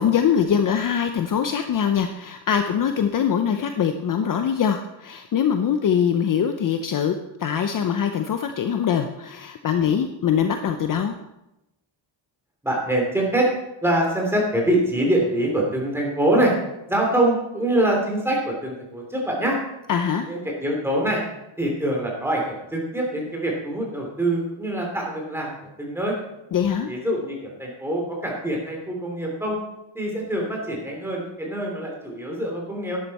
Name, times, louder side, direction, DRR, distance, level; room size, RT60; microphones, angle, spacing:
voice 1, 0.0-11.1 19.9-20.3 26.5-26.9, left 8 dB, 45° left, 7 dB, 0.6 m, -23 dB
voice 2, 12.6-13.5 13.8-16.5 16.9-19.6 20.2-21.2 21.6-26.1 26.9-29.6 29.9-33.0, right 1 dB, 5° right, -1 dB, 3.0 m, -24 dB
11.5 x 10.5 x 4.2 m, 0.91 s
cardioid pair, 160°, 47 cm